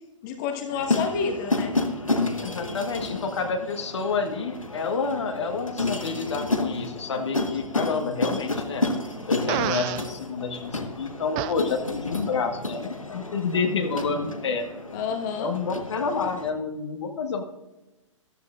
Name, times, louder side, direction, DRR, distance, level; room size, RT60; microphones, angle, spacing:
voice 1, 0.2-1.7 14.9-15.5, left 6 dB, 35° left, 4 dB, 1.3 m, -29 dB
sound 1, 0.7-16.5, left 2 dB, 85° left, 1.3 m, -31 dB
voice 2, 2.4-8.9 9.3-14.7 15.4-17.4, left 4 dB, 60° left, 5 dB, 1.4 m, -29 dB
Fart, 9.5-10.1 11.4-11.5, right 13 dB, 25° right, 0.4 m, -28 dB
14.0 x 12.5 x 2.5 m, 1.0 s
figure-of-eight pair, 115°, 17 cm